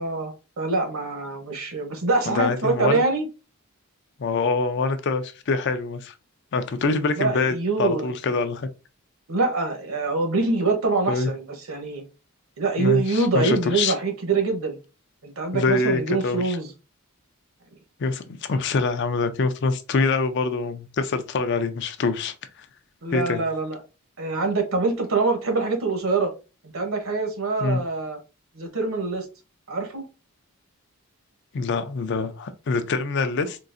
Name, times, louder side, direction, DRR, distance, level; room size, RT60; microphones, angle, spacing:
voice 1, 0.0-3.3 7.2-8.1 9.3-12.0 12.6-14.8 15.2-16.7 23.0-23.8 24.2-26.3 26.6-28.2 28.5-29.3 29.7-30.0, right 3 dB, 70° right, 0.9 m, -25 dB
voice 2, 2.3-3.0 4.2-6.1 6.5-8.7 11.1-11.3 12.8-13.9 15.5-16.6 18.0-22.3 23.1-23.4 27.6-27.8 31.5-33.6, left 4 dB, 50° left, 0.4 m, -25 dB
3.8 x 2.4 x 2.5 m
head